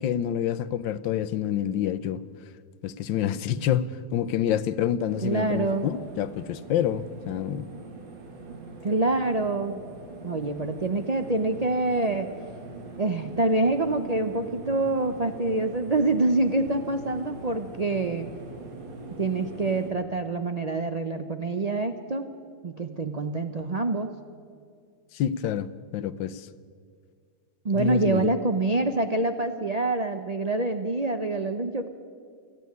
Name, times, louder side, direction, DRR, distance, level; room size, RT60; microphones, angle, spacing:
voice 1, 0.0-2.2 2.8-7.6 25.1-25.7 25.9-26.5 27.7-28.3, left 10 dB, 90° left, 16 dB, 1.5 m, -27 dB
voice 2, 3.5-3.8 5.2-5.9 8.8-9.8 10.2-12.3 13.0-18.3 19.2-22.3 22.6-24.1 27.6-31.9, right 2 dB, 55° right, 8 dB, 0.4 m, -26 dB
sound 1, 5.1-19.9, right 2 dB, 80° right, 2.7 m, -42 dB
28.0 x 9.8 x 9.5 m, 2.2 s
omnidirectional pair, 2.0 m